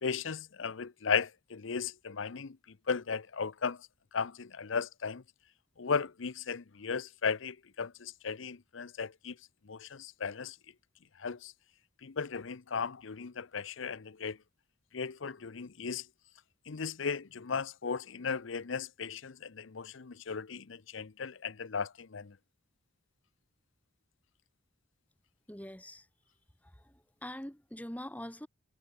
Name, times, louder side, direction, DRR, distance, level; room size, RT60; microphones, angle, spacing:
voice 1, 0.0-2.6 2.9-3.8 4.1-5.2 5.8-9.3 9.7-10.5 11.2-11.5 12.0-14.4 14.9-16.0 16.7-22.3, left 5 dB, 90° left, 0.7 m, -36 dB
voice 2, 25.5-26.1 26.6-28.5, left 1 dB, 10° left, 1.8 m, -44 dB
head